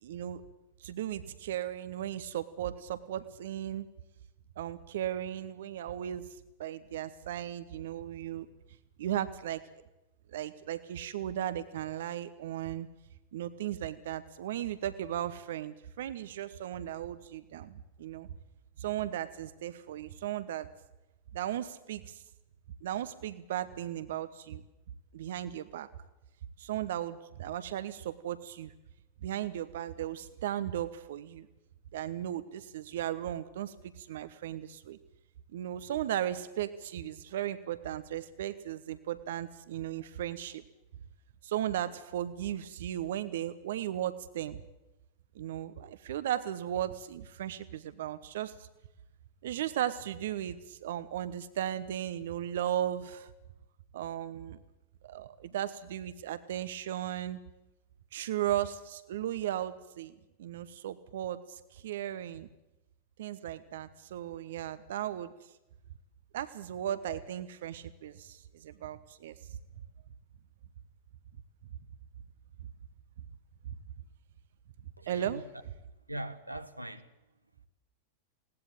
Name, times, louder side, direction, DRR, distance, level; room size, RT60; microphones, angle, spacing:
voice 1, 0.0-0.4 0.8-3.9 4.6-6.2 6.6-8.5 9.0-9.6 10.3-12.9 13.3-18.3 18.8-20.7 21.3-22.2 22.8-24.6 25.1-25.9 26.6-28.7 29.2-31.5 31.9-35.0 35.5-40.6 41.4-44.6 45.3-48.7 49.4-53.3 53.9-54.6 55.0-57.4 58.1-60.1 60.4-62.5 63.2-65.3 66.3-69.4 75.1-75.4, right 11 dB, 60° right, 1.1 m, -36 dB
voice 2, 75.0-75.4 76.1-77.1, right 1 dB, 85° right, 1.2 m, -41 dB
20.5 x 18.0 x 8.8 m
figure-of-eight pair, 90°, 0 cm